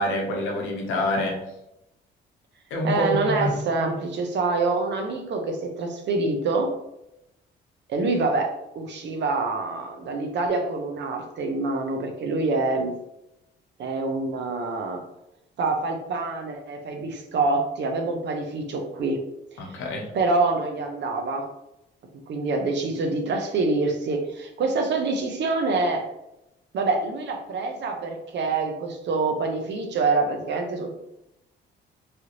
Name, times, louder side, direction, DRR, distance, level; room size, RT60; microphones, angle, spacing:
voice 1, 0.0-1.4 2.7-3.5 19.6-20.1, left 1 dB, 85° left, 1 dB, 0.8 m, -26 dB
voice 2, 2.8-6.7 7.9-12.9 13.8-15.0 15.6-19.2 20.1-21.5 22.3-26.1 26.7-31.0, right 3 dB, 65° right, 3 dB, 0.8 m, -26 dB
3.3 x 2.5 x 3.0 m, 0.86 s
cardioid pair, 90°, 20 cm